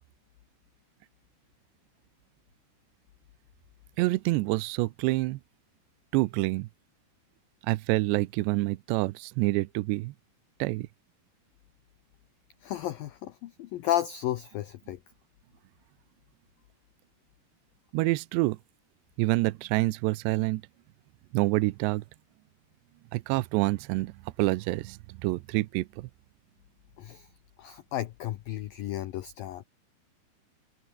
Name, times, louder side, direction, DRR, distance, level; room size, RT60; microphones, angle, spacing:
voice 1, 4.0-5.4 6.1-6.7 7.6-10.1 10.6-10.9 17.9-18.6 19.2-20.6 21.3-22.0 23.1-24.1 24.4-26.1, right 20 dB, 80° right, 2.7 m, -27 dB
voice 2, 12.6-15.0 27.0-27.3 27.6-29.6, left 12 dB, 80° left, 2.0 m, -33 dB
omnidirectional pair, 5.5 m